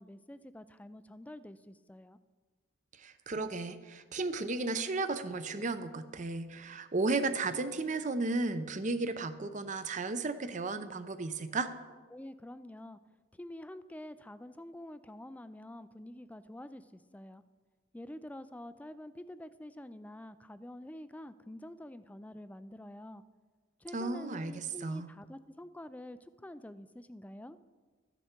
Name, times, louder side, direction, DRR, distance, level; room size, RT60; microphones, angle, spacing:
voice 1, 0.0-2.2 12.1-13.0 13.4-17.4 17.9-23.2 23.8-27.6, left 1 dB, 5° left, 13 dB, 0.3 m, -47 dB
voice 2, 3.0-11.7 23.9-25.1, right 3 dB, 40° right, 11 dB, 0.6 m, -34 dB
13.5 x 9.9 x 4.4 m, 1.4 s
head